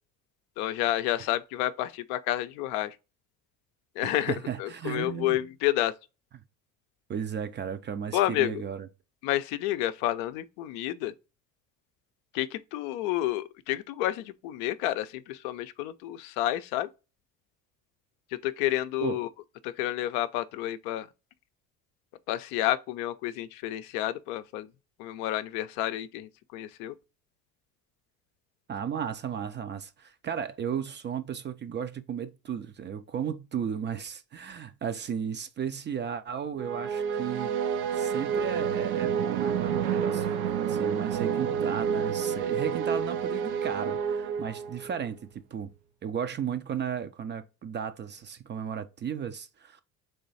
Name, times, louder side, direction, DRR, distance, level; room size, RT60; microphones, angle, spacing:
voice 1, 0.6-2.9 4.0-4.3 4.6-5.9 8.1-8.6 9.2-11.1 12.3-16.9 18.4-19.3 19.6-21.1 22.3-24.7 25.0-26.9, left 14 dB, 70° left, 0.5 m, -30 dB
voice 2, 4.0-5.4 7.1-8.9 19.0-19.2 28.7-37.5 37.9-45.7 46.0-49.8, right 8 dB, 25° right, 0.4 m, -35 dB
sound 1, 36.6-45.0, right 7 dB, 80° right, 0.6 m, -29 dB
3.4 x 3.0 x 4.0 m
hypercardioid pair, 60°, 43 cm